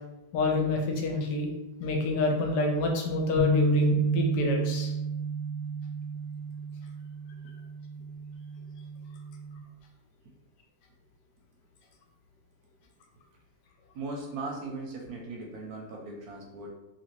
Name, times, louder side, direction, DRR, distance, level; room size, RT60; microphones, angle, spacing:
voice 1, 0.3-1.5 1.8-4.9, left 2 dB, 75° left, 2 dB, 1.1 m, -27 dB
sound 1, 3.4-9.6, right 4 dB, 90° right, 1.3 m, -30 dB
voice 2, 13.9-16.7, right 3 dB, 70° right, -1 dB, 1.0 m, -38 dB
2.9 x 2.7 x 3.0 m, 0.97 s
omnidirectional pair, 1.9 m